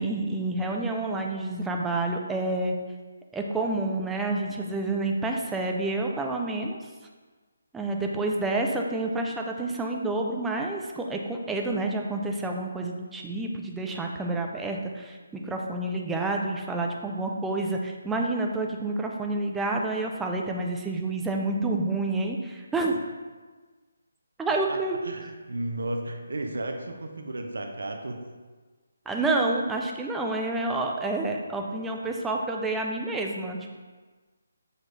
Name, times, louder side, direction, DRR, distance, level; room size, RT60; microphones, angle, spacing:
voice 1, 0.0-2.7 3.3-6.8 7.7-23.0 24.4-25.0 29.1-33.8, right 2 dB, 5° right, 1 dB, 0.3 m, -29 dB
voice 2, 25.0-28.2, right 1 dB, 75° right, 4 dB, 0.5 m, -33 dB
6.4 x 2.5 x 3.1 m, 1.3 s
figure-of-eight pair, 155°, 0 cm